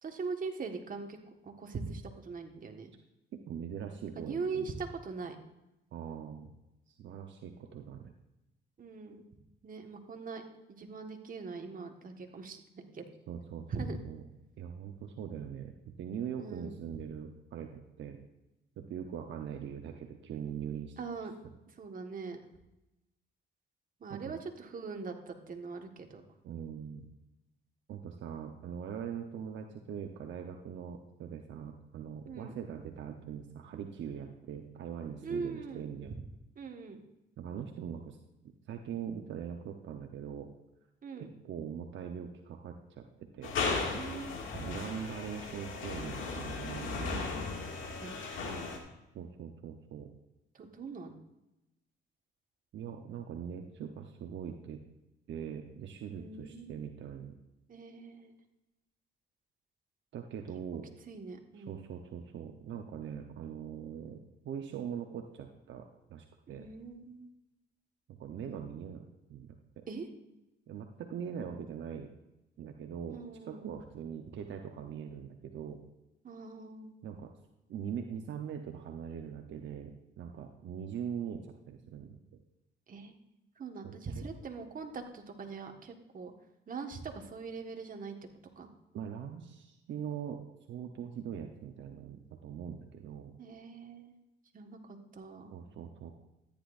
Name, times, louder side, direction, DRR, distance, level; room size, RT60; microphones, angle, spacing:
voice 1, 0.0-1.2 1.4-2.9 4.1-5.4 8.8-9.2 9.6-10.4 10.7-13.0 13.7-14.0 16.4-16.8 21.0-21.3 21.8-22.4 24.0-26.2 32.3-32.5 35.2-35.9 36.6-37.0 41.0-41.3 43.8-44.3 48.0-48.8 50.5-51.1 56.1-56.7 57.7-58.3 61.1-61.8 66.5-67.3 69.9-70.1 73.1-73.7 76.2-76.9 82.9-83.2 83.6-86.3 86.7-88.1 88.6-88.7 93.4-94.1 94.5-95.5, right 4 dB, 45° right, 4 dB, 1.6 m, -41 dB
voice 2, 3.5-4.7 5.9-6.5 6.9-8.1 13.3-14.2 14.6-18.2 18.8-21.0 24.1-24.3 26.4-27.1 27.9-36.2 37.4-38.2 38.7-40.5 41.2-43.5 44.6-47.2 49.1-50.1 52.7-54.8 55.3-57.3 60.1-60.9 61.5-66.7 68.1-69.0 69.3-69.8 70.7-72.1 72.6-75.8 77.0-77.3 77.7-82.1 83.8-84.2 88.9-90.4 90.7-93.3 95.5-96.1, right 8 dB, 70° right, 4 dB, 0.9 m, -42 dB
sound 1, 43.4-48.8, left 4 dB, 85° left, 2.2 m, -36 dB
14.0 x 10.0 x 2.6 m, 0.94 s
cardioid pair, 90°, 20 cm